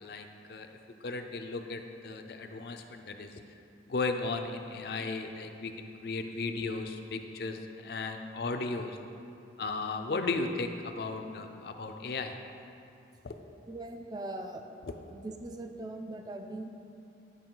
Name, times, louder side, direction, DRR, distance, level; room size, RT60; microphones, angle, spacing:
voice 1, 0.0-0.7 1.0-3.3 3.9-9.0 9.6-12.4 13.2-13.3, left 3 dB, 55° left, 6 dB, 0.4 m, -35 dB
voice 2, 13.7-14.6 15.1-16.7, right 2 dB, 20° right, 5 dB, 0.3 m, -40 dB
10.0 x 4.8 x 3.8 m, 2.7 s
head